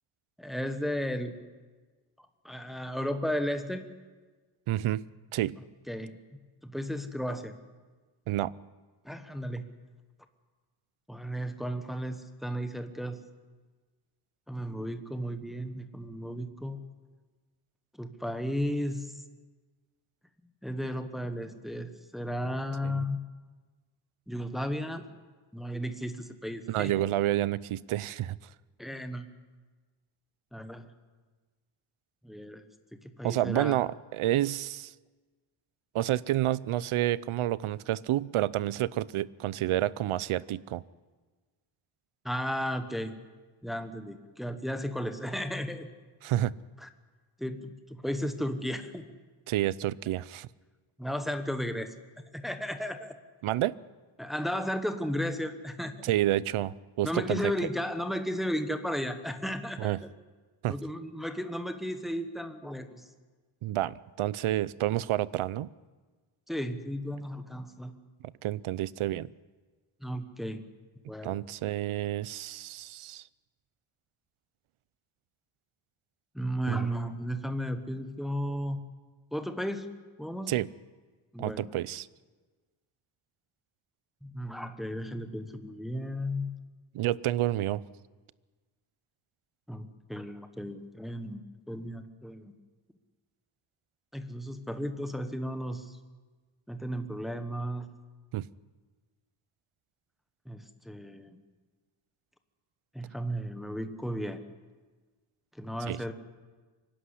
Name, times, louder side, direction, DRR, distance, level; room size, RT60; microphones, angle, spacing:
voice 1, 0.4-1.4 2.4-3.9 5.9-6.2 6.6-7.5 9.0-9.6 11.1-13.2 14.5-16.8 18.0-19.1 20.6-23.2 24.3-25.0 25.5-26.9 28.8-29.3 30.5-30.9 32.2-32.6 33.2-33.8 42.2-43.1 43.6-45.9 46.8-46.9 47.4-49.1 51.0-51.9 52.3-53.2 54.2-56.0 57.0-59.9 60.7-63.0 66.5-67.9 70.0-70.6 71.1-71.4 76.3-78.8 79.3-79.9 80.2-80.5 81.3-81.7 84.2-86.5 89.7-91.4 91.7-92.5 94.1-96.0 96.7-97.9 100.5-101.4 102.9-104.4 105.6-106.1, equal, ahead, 7 dB, 1.1 m, -34 dB
voice 2, 4.7-5.6 8.3-8.5 22.8-23.1 26.7-28.4 33.2-34.9 35.9-40.8 46.2-46.5 49.5-50.5 53.4-53.8 56.0-57.5 59.8-60.0 60.6-60.8 63.6-65.7 68.4-69.3 71.2-73.2 76.7-76.9 80.5-80.7 81.4-82.1 86.9-87.8 98.3-98.5 105.9-106.0, right 14 dB, 80° right, 20 dB, 0.7 m, -29 dB
24.5 x 11.5 x 9.8 m, 1.3 s
wide cardioid pair, 170°, 49 cm